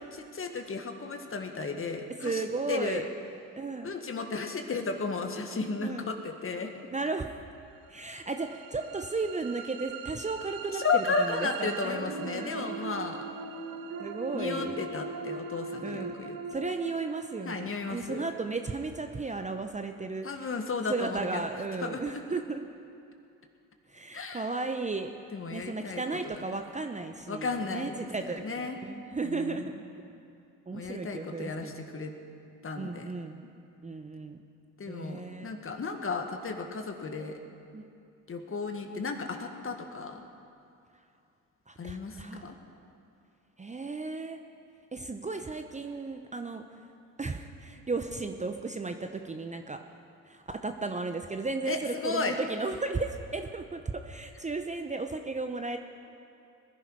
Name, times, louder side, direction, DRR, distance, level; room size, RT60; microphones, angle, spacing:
voice 1, 0.3-3.0 3.8-6.7 10.7-13.3 14.3-16.4 17.5-18.2 20.2-21.4 21.8-22.0 22.3-22.4 24.1-24.5 25.3-26.0 27.3-28.1 28.4-28.8 29.2-29.7 30.7-32.1 32.6-33.1 34.8-37.4 38.3-40.2 41.8-42.6 51.7-52.4, left 4 dB, 35° left, 5 dB, 1.7 m, -34 dB
voice 2, 2.2-3.1 3.6-3.9 5.8-6.1 6.9-7.3 7.9-12.7 14.0-14.8 15.8-16.2 16.5-20.5 20.9-22.6 23.9-25.1 25.5-29.7 30.7-31.8 32.8-33.4 33.8-34.4 34.9-35.6 37.7-37.8 41.7-42.5 43.6-44.4 44.9-46.6 47.2-49.8 50.3-55.8, right 3 dB, 20° right, 6 dB, 0.8 m, -35 dB
sound 1, 8.0-20.0, right 5 dB, 60° right, 1.4 m, -41 dB
20.0 x 11.0 x 4.7 m, 2.5 s
hypercardioid pair, 60°, 39 cm